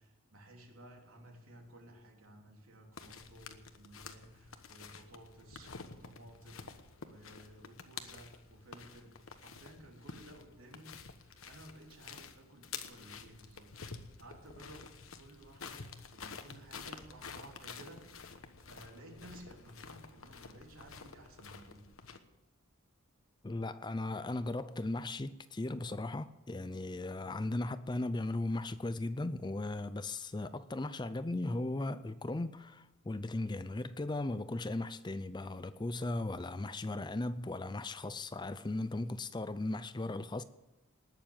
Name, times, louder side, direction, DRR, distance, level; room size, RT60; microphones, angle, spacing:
voice 1, 0.0-10.9 11.2-21.8, right 1 dB, 75° right, 3.4 m, -55 dB
sound 1, 2.9-22.2, left 5 dB, 70° left, 1.2 m, -50 dB
voice 2, 23.4-40.4, left 2 dB, 20° left, 0.5 m, -37 dB
19.5 x 7.1 x 8.9 m
head